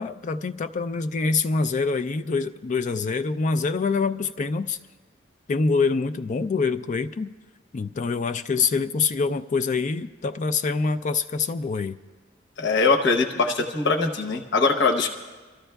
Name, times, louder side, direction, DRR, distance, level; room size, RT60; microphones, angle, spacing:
voice 1, 0.0-4.8 5.5-7.3 7.7-12.0, left 4 dB, 40° left, 10 dB, 0.3 m, -25 dB
voice 2, 12.6-15.1, left 4 dB, 60° left, 4 dB, 0.9 m, -22 dB
29.5 x 13.5 x 2.3 m, 1.4 s
head